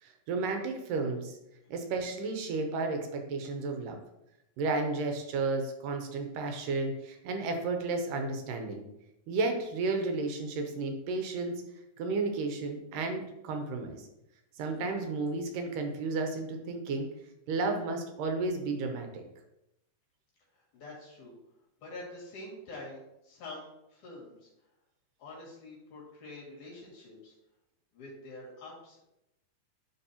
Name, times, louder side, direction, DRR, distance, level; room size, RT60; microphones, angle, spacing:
voice 1, 0.0-1.4 1.7-4.0 4.6-8.8 9.3-11.6 12.0-14.1 14.6-17.1 17.5-19.2, right 3 dB, 75° right, 4 dB, 2.3 m, -32 dB
voice 2, 20.5-21.3 21.8-24.5 25.2-27.3 27.9-29.0, left 2 dB, 60° left, -5 dB, 3.5 m, -46 dB
11.0 x 4.3 x 2.9 m, 0.88 s
omnidirectional pair, 4.2 m